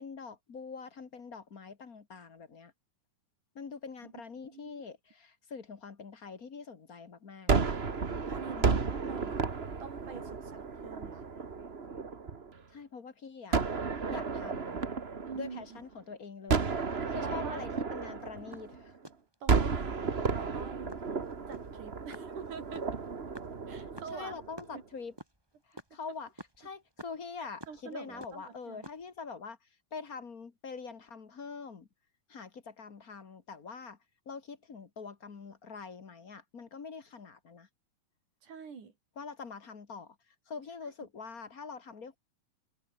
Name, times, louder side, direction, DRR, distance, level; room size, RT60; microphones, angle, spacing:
voice 1, 0.0-2.7 3.5-7.5 8.6-8.9 12.7-13.6 14.1-14.8 15.3-19.0 24.1-25.1 25.7-29.6 29.9-31.9 32.3-34.0 34.2-37.7 39.1-40.2 40.5-42.2, left 5 dB, 35° left, 1.6 m, -44 dB
voice 2, 4.5-4.8 8.3-9.5 9.8-11.3 15.2-15.8 17.2-17.6 19.4-21.0 21.5-22.9 23.7-24.3 24.7-24.8 27.4-28.9 38.4-38.9, right 6 dB, 65° right, 5.1 m, -45 dB
Gunshot gunfire, 7.5-12.6 13.5-15.9 16.5-19.0 19.5-24.7, right 5 dB, 50° right, 0.7 m, -33 dB
sound 1, 18.3-19.9 20.3-20.5 20.9-24.7 25.0-27.9 28.2-29.2, right 1 dB, 5° right, 3.8 m, -50 dB
omnidirectional pair, 3.8 m